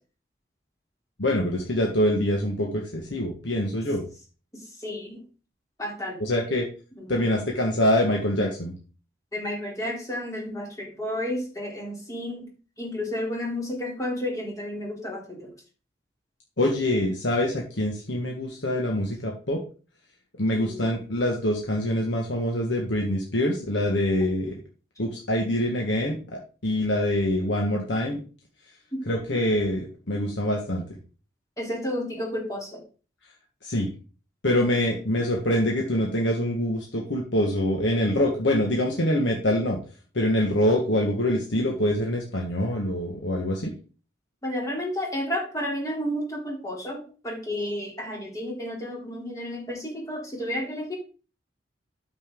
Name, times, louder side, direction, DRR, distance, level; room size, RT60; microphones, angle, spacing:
voice 1, 1.2-4.1 6.2-6.6 7.1-8.7 16.6-19.6 20.4-24.5 25.0-28.2 29.1-31.0 33.6-33.9 34.4-39.8 40.1-43.7, left 1 dB, 85° left, 0 dB, 1.7 m, -25 dB
voice 2, 4.5-5.2 5.8-6.2 7.0-7.2 9.3-12.5 12.8-15.5 20.5-20.8 28.9-29.0 31.6-32.8 44.4-51.0, left 1 dB, 20° left, -1 dB, 3.3 m, -32 dB
8.9 x 7.2 x 3.8 m, 0.36 s
head